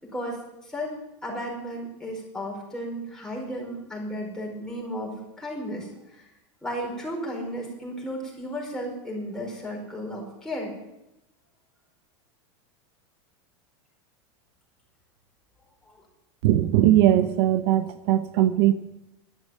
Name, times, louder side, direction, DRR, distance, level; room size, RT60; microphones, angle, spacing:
voice 1, 0.0-0.9 1.2-5.9 6.1-6.2 6.6-10.7 15.9-16.0, equal, 5° left, -2 dB, 5.0 m, -34 dB
voice 2, 16.4-18.7, right 13 dB, 60° right, 11 dB, 0.8 m, -20 dB
12.0 x 12.0 x 7.3 m, 0.88 s
supercardioid pair, 145°, 15 cm